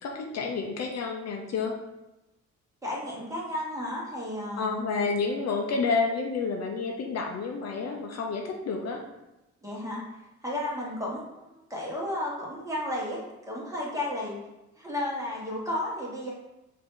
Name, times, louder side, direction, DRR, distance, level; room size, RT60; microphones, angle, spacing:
voice 1, 0.0-1.7 4.6-9.0, left 4 dB, 60° left, 2 dB, 0.7 m, -29 dB
voice 2, 2.8-4.7 9.6-14.4 14.8-16.3, left 1 dB, 10° right, -4 dB, 1.6 m, -33 dB
4.9 x 2.8 x 3.8 m, 0.99 s
cardioid pair, 90°, 30 cm